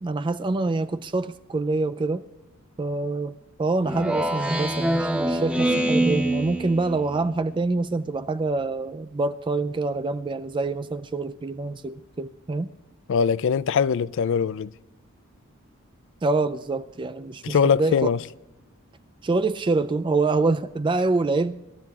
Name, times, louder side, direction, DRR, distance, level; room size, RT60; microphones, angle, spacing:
voice 1, 0.0-2.2 2.8-3.3 3.6-12.7 16.2-18.1 19.2-21.6, right 3 dB, 20° right, 0.3 m, -26 dB
Speech synthesizer, 3.8-7.4, right 1 dB, 5° right, 0.9 m, -25 dB
voice 2, 13.1-14.7 17.4-18.2, left 6 dB, 60° left, 0.4 m, -22 dB
27.0 x 12.5 x 2.4 m
head